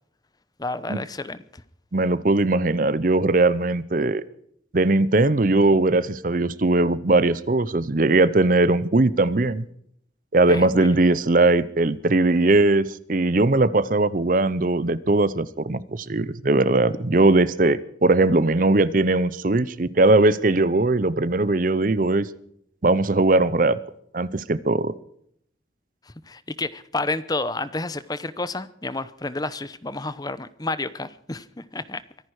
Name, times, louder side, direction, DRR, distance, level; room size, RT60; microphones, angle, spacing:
voice 1, 0.6-1.6 10.5-10.9 26.3-32.0, left 2 dB, 20° left, 15 dB, 0.8 m, -30 dB
voice 2, 1.9-4.2 4.7-9.6 10.3-22.3 22.8-23.8 24.1-24.9, right 2 dB, 45° right, 18 dB, 0.7 m, -20 dB
24.0 x 11.0 x 4.8 m, 0.69 s
head